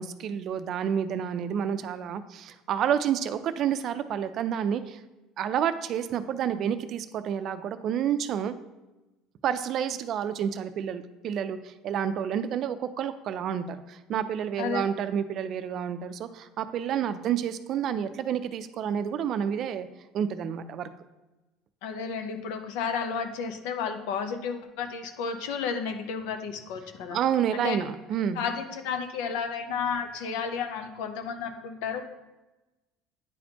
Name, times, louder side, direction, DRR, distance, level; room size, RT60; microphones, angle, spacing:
voice 1, 0.0-5.0 5.4-8.5 9.4-19.9 20.1-20.9 27.1-28.4, right 8 dB, 50° right, 11 dB, 0.4 m, -29 dB
voice 2, 21.8-27.2 27.5-27.8 28.3-32.0, left 6 dB, 80° left, 7 dB, 0.7 m, -32 dB
9.7 x 4.2 x 2.9 m, 1.1 s
supercardioid pair, 115°, 0 cm